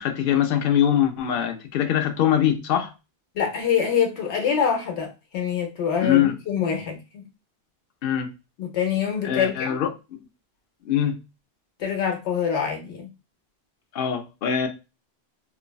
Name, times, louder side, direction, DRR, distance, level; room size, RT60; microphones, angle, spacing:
voice 1, 0.0-2.9 6.0-6.3 8.0-8.3 9.2-9.9 10.9-11.2 13.9-14.7, left 10 dB, 65° left, 0.7 m, -22 dB
voice 2, 3.3-7.2 8.6-9.8 11.8-13.1, left 7 dB, 85° left, 1.0 m, -25 dB
3.3 x 2.1 x 2.2 m
omnidirectional pair, 1.1 m